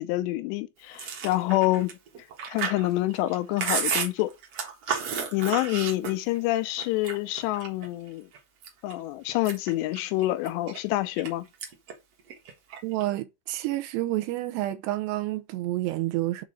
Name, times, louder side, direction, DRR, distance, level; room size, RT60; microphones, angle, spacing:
voice 1, 0.0-1.9 2.5-4.3 4.9-5.0 5.3-8.3 8.8-11.5, left 17 dB, 85° left, 2.8 m, -27 dB
Chewing mastication, 0.9-6.4 6.8-7.9 8.3-8.9 9.3-11.3 11.6-11.9 12.2-13.0, right 6 dB, 60° right, 1.7 m, -32 dB
voice 2, 12.8-16.4, right 16 dB, 80° right, 2.7 m, -29 dB
6.9 x 3.8 x 6.2 m
omnidirectional pair, 5.0 m